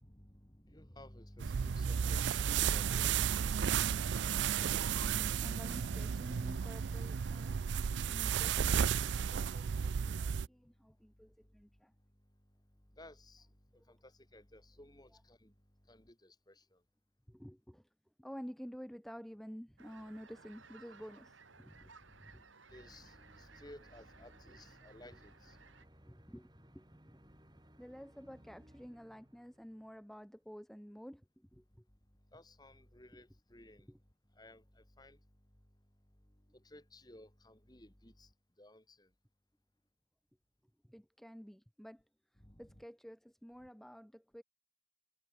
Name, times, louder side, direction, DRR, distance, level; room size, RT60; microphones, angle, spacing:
voice 1, 0.0-4.0 12.9-13.5 13.9-15.5 15.9-16.8 21.7-25.6 32.3-33.9 34.3-35.2 36.5-38.3 38.6-39.1 42.4-42.8, left 1 dB, 20° left, 2.9 m, -57 dB
sound 1, 1.4-10.5, right 7 dB, 65° right, 0.4 m, -33 dB
voice 2, 5.0-7.6 8.1-11.9 17.3-17.9 18.2-21.9 22.2-22.4 24.5-24.6 26.1-27.2 27.8-31.6 33.9-34.0 40.8-42.0 42.6-44.4, equal, ahead, 0.9 m, -51 dB
sound 2, 19.8-25.9, right 4 dB, 90° right, 4.5 m, -60 dB
sound 3, 22.8-30.4, equal, 20° right, 4.2 m, -63 dB
head